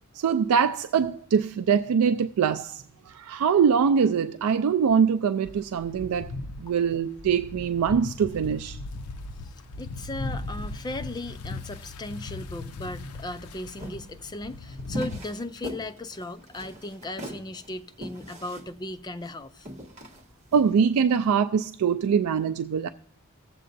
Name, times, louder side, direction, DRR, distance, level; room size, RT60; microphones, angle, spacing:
voice 1, 0.1-6.3 6.6-8.8 20.5-22.9, right 7 dB, 85° right, 0.4 m, -23 dB
sound 1, 5.5-15.2, left 2 dB, 80° left, 0.6 m, -38 dB
voice 2, 9.8-19.7, left 1 dB, 20° left, 0.4 m, -37 dB
sound 2, 13.8-21.2, left 1 dB, 30° right, 1.5 m, -40 dB
18.0 x 7.6 x 2.6 m
head